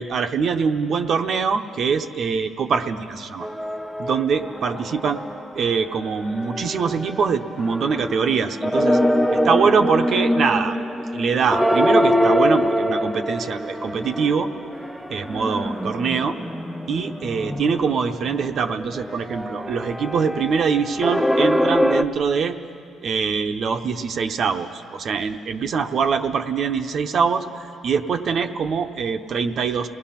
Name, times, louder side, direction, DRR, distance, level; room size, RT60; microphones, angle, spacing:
voice 1, 0.0-3.5 4.0-5.2 5.5-9.0 9.4-10.8 11.1-14.5 15.1-16.4 16.9-22.5 23.0-27.4 27.8-29.9, right 6 dB, 50° right, 6 dB, 0.8 m, -23 dB
sound 1, 3.4-5.6 5.9-22.0, equal, ahead, 0.6 m, -24 dB
29.5 x 19.0 x 5.9 m, 2.4 s
cardioid pair, 150°, 0 cm